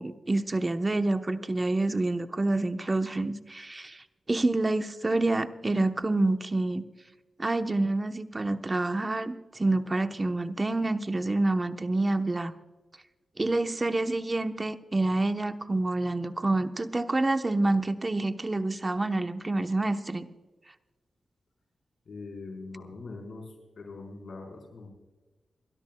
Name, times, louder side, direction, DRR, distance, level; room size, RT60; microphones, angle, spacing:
voice 1, 0.0-6.8 7.4-12.5 13.4-20.3, right 2 dB, 30° right, 8 dB, 1.0 m, -27 dB
voice 2, 22.1-24.9, left 3 dB, 70° left, 2 dB, 4.5 m, -42 dB
28.5 x 13.0 x 2.3 m, 1.2 s
cardioid pair, 50°, 0 cm